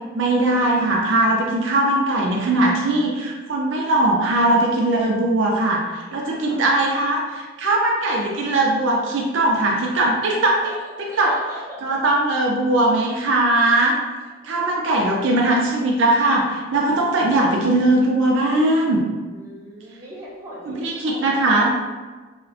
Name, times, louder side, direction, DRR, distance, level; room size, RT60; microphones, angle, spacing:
voice 1, 0.1-7.2 7.6-10.6 11.0-11.3 11.8-14.0 14.4-19.1 20.7-21.7, right 2 dB, 70° right, -1 dB, 0.4 m, -20 dB
voice 2, 6.3-7.2 10.6-10.8 11.1-12.0 19.3-21.8, equal, 15° right, -9 dB, 0.8 m, -39 dB
2.4 x 2.1 x 3.6 m, 1.3 s
head